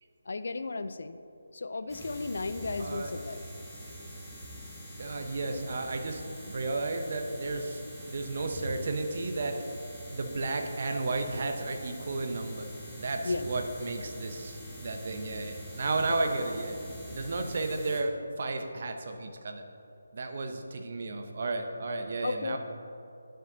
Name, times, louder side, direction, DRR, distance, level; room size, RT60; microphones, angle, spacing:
voice 1, 0.3-1.2 1.5-3.4 13.2-13.5 16.1-16.2 22.2-22.6, left 3 dB, 65° left, 11 dB, 0.5 m, -34 dB
sound 1, 1.9-18.0, equal, ahead, 1.4 m, -44 dB
voice 2, 2.8-3.1 5.0-9.6 10.1-12.7 12.9-16.8 17.1-19.6 20.1-22.6, right 2 dB, 45° right, 5 dB, 0.9 m, -33 dB
10.5 x 6.4 x 4.0 m, 2.8 s
figure-of-eight pair, 165°, 0 cm